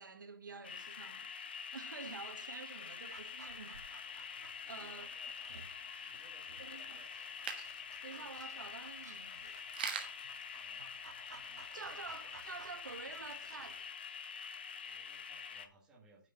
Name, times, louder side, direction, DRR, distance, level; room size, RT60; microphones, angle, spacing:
voice 1, 0.0-1.3 1.7-4.2 4.7-5.1 6.6-7.0 8.0-9.6 11.7-13.9, right 4 dB, 65° right, 1.6 m, -49 dB
sound 1, 0.6-15.7, left 7 dB, 30° left, 0.7 m, -47 dB
Dog, 3.1-13.8, right 5 dB, 50° right, 1.9 m, -58 dB
sound 2, 3.2-11.4, right 6 dB, 25° right, 1.3 m, -49 dB
voice 2, 4.5-5.6 6.0-7.3 8.0-8.9 10.6-10.9 11.4-12.0 12.2-12.7 14.8-16.3, right 4 dB, 5° right, 1.7 m, -65 dB
9.4 x 4.9 x 7.1 m
hypercardioid pair, 175°, 11 cm